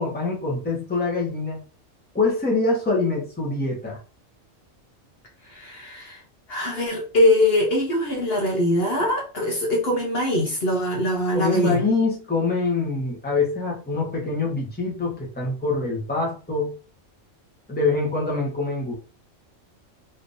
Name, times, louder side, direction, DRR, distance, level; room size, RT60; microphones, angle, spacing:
voice 1, 0.0-1.6 2.1-4.0 11.3-16.7 17.7-18.9, left 3 dB, 10° left, 1.0 m, -24 dB
voice 2, 5.5-6.2 6.5-11.9, left 1 dB, 55° left, 1.0 m, -22 dB
3.5 x 2.8 x 2.6 m
omnidirectional pair, 1.3 m